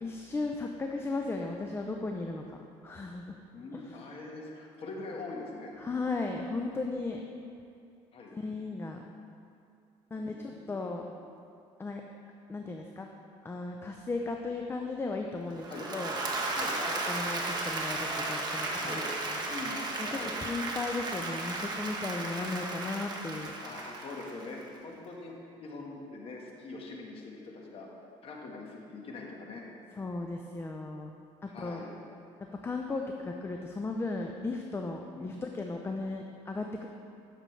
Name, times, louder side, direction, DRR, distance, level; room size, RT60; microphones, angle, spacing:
voice 1, 0.0-3.4 3.7-4.0 5.8-7.2 8.3-9.0 10.1-11.1 11.8-12.0 12.5-13.1 13.4-15.7 15.9-16.1 16.8-19.4 20.0-23.5 30.0-31.1 31.4-31.8 32.6-36.9, left 3 dB, 20° left, 2 dB, 0.5 m, -36 dB
voice 2, 3.5-5.8 8.1-8.4 10.1-10.9 15.7-15.9 16.5-16.8 18.7-19.1 19.5-19.8 20.1-20.3 23.6-27.9 28.2-29.6 31.5-31.9 35.1-35.3, left 3 dB, 45° left, -1 dB, 1.4 m, -43 dB
Applause / Crowd, 15.5-24.7, right 2 dB, 30° right, 1.2 m, -35 dB
11.0 x 6.6 x 3.2 m, 2.5 s
cardioid pair, 105°, 13 cm